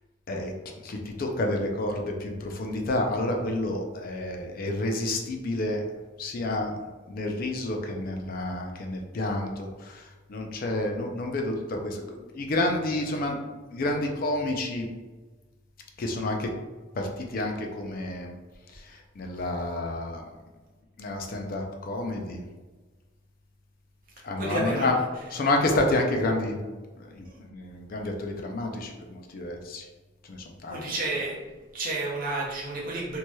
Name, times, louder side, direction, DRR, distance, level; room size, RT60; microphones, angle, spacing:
voice 1, 0.8-5.8 6.2-6.7 7.1-13.4 13.7-14.9 16.0-16.5 16.9-18.3 18.7-20.3 21.0-22.4 24.2-25.0 25.3-26.6 27.0-29.9 30.3-30.8, left 2 dB, 50° left, 2 dB, 0.4 m, -29 dB
voice 2, 24.4-24.9 27.2-27.3 30.7-31.4 31.7-33.2, right 2 dB, 50° right, -4 dB, 0.6 m, -30 dB
3.0 x 2.7 x 2.2 m, 1.3 s
head